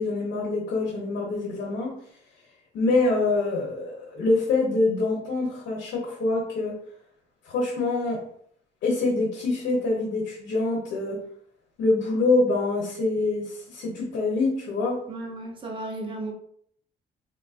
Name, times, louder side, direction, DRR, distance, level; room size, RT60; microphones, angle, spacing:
voice 1, 0.0-1.9 2.7-6.7 7.4-8.2 8.8-11.2 11.8-15.0, left 3 dB, 75° left, -3 dB, 0.9 m, -25 dB
voice 2, 15.1-16.3, right 2 dB, 25° right, 1 dB, 0.6 m, -34 dB
3.5 x 2.4 x 2.5 m, 0.64 s
cardioid pair, 170°, 19 cm